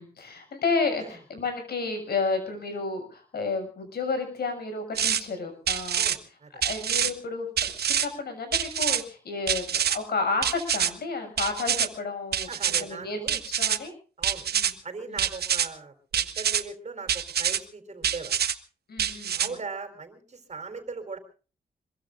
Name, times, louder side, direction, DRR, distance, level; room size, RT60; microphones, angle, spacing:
voice 1, 0.0-6.1 6.6-13.9 14.5-14.7 15.1-15.2 18.9-19.5, left 4 dB, 75° left, 6 dB, 6.7 m, -31 dB
sound 1, 4.9-5.2 5.7-6.2 6.6-7.1 7.6-8.1 8.5-9.0 9.5-10.0 10.4-10.9 11.4-11.9 12.3-12.8 13.3-13.8 14.2-14.7 15.2-15.7 16.1-16.6 17.1-17.6 18.0-18.5 19.0-19.5, right 9 dB, 80° right, 1.2 m, -26 dB
voice 2, 5.9-6.7 12.5-13.4 14.2-14.5 14.8-18.4 19.3-21.2, right 4 dB, 45° right, 7 dB, 4.0 m, -39 dB
24.5 x 22.5 x 2.5 m, 0.38 s
wide cardioid pair, 115°, 16 cm